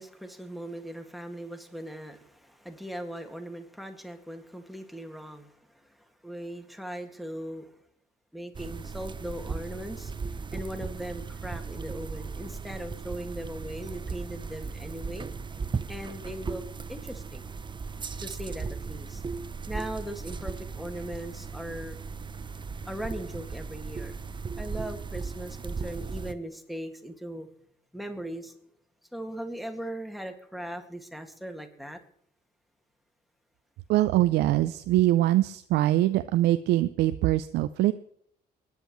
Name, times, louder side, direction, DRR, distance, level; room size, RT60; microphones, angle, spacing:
voice 1, 0.0-7.7 8.3-10.1 10.5-15.3 15.9-17.4 18.2-19.2 19.7-22.0 22.9-24.2 24.6-27.5 27.9-28.6 29.1-32.0, right 1 dB, ahead, 6 dB, 2.0 m, -39 dB
sound 1, 8.5-26.3, right 5 dB, 25° right, 0.6 m, -37 dB
voice 2, 33.9-37.9, right 15 dB, 80° right, 11 dB, 0.5 m, -23 dB
23.5 x 10.0 x 3.1 m, 0.68 s
supercardioid pair, 70°, 17 cm